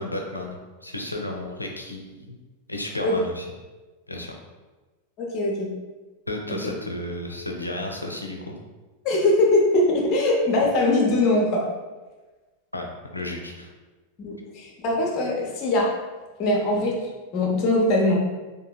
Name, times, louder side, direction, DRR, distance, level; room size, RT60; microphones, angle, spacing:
voice 1, 0.0-2.4 2.7-3.4 4.1-4.3 6.3-8.5 12.7-13.7, left 1 dB, 85° left, 1 dB, 0.4 m, -33 dB
voice 2, 5.2-5.7 6.5-6.6 9.0-11.6 14.2-15.9 16.4-17.0 17.3-18.1, left 2 dB, 40° left, -1 dB, 0.7 m, -21 dB
3.7 x 2.6 x 2.3 m, 1.2 s
figure-of-eight pair, 90°, 0 cm